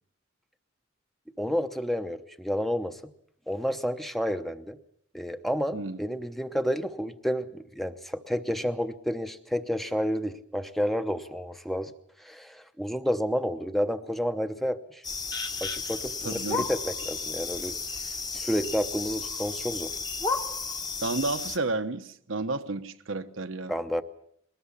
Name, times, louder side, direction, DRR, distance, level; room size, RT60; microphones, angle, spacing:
voice 1, 1.4-3.0 3.5-4.8 5.1-11.9 12.2-15.0 15.6-17.8 18.3-19.9 23.7-24.0, equal, ahead, 0.8 m, -30 dB
sound 1, 15.0-21.6, left 4 dB, 20° left, 1.2 m, -33 dB
voice 2, 16.2-16.7 21.0-23.7, right 3 dB, 80° right, 1.0 m, -31 dB
22.0 x 19.5 x 7.2 m
head